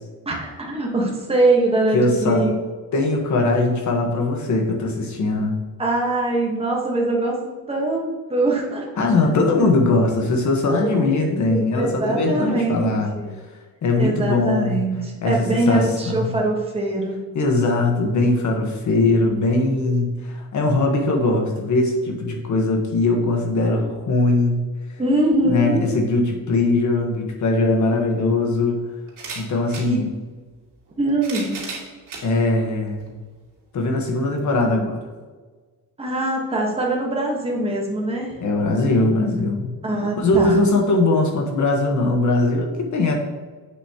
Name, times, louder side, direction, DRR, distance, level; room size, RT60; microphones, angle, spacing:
voice 1, 0.2-2.5 5.8-7.4 7.7-8.9 10.7-13.3 14.0-17.3 25.0-25.9 29.9-30.0 31.0-31.6 36.0-38.3 39.8-40.6, right 2 dB, 15° right, -1 dB, 1.3 m, -22 dB
voice 2, 1.9-2.5 2.9-5.5 9.0-13.1 13.8-14.8 15.2-16.3 17.3-24.7 25.4-28.8 29.3-30.1 32.2-33.1 33.7-35.0 38.4-39.8 40.2-43.2, left 2 dB, 55° left, 2 dB, 1.3 m, -20 dB
sound 1, 27.7-27.8 29.1-29.9 30.9-32.3 33.0-33.1 34.4-34.5, right 4 dB, 60° right, 2.2 m, -34 dB
7.8 x 6.9 x 2.9 m, 1.4 s
wide cardioid pair, 170°, 35 cm